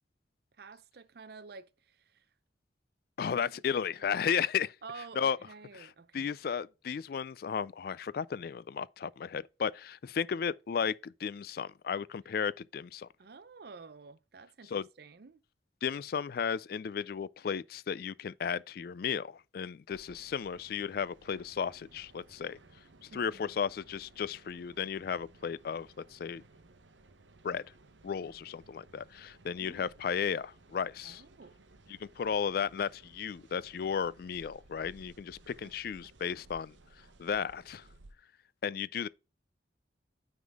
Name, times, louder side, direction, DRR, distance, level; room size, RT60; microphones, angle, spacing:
voice 1, 0.6-2.2 3.3-4.2 4.8-6.3 13.2-15.4 23.1-23.6 29.6-29.9 31.0-31.6 35.6-35.7, right 4 dB, 55° right, 0.5 m, -51 dB
voice 2, 3.2-4.7 5.2-5.4 5.8-5.9 6.1-13.1 14.7-14.8 15.8-22.6 23.1-26.4 27.4-27.6 28.0-31.2 32.0-36.7 37.2-37.8 38.6-39.1, left 7 dB, 50° left, 0.3 m, -34 dB
sound 1, 19.9-38.1, right 2 dB, 80° right, 0.8 m, -59 dB
9.5 x 3.7 x 3.5 m
head